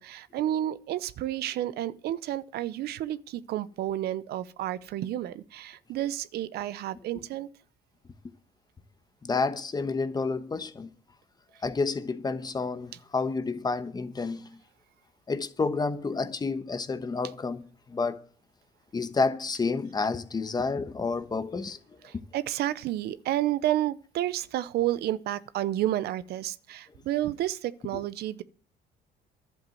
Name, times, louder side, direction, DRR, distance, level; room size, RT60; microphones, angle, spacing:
voice 1, 0.0-7.5 22.0-28.4, right 13 dB, 70° right, 0.7 m, -31 dB
voice 2, 9.2-10.9 11.6-14.6 15.3-17.6 17.9-18.2 18.9-21.8 27.9-28.0, left 4 dB, 25° left, 1.1 m, -30 dB
11.5 x 7.9 x 7.7 m
cardioid pair, 110°, 17 cm